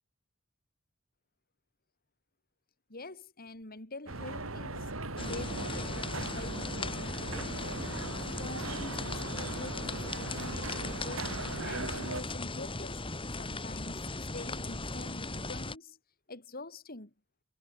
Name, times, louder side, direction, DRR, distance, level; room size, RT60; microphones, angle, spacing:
voice 1, 2.9-7.8 8.4-11.3 11.6-13.0 13.3-16.0 16.3-17.1, left 2 dB, 50° left, 4.2 m, -46 dB
sound 1, 4.1-12.2, right 2 dB, 85° right, 5.0 m, -39 dB
sound 2, 5.2-15.8, left 2 dB, 25° left, 3.8 m, -38 dB
head